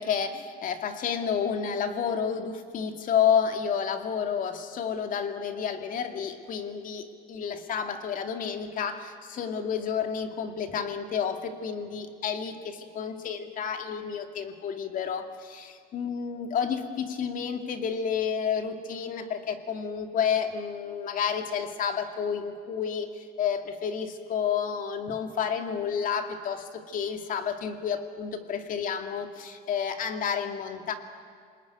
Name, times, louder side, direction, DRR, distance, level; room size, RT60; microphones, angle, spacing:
voice 1, 0.0-30.9, left 7 dB, 45° left, 7 dB, 2.4 m, -30 dB
28.0 x 20.0 x 9.4 m, 2.2 s
cardioid pair, 145°, 19 cm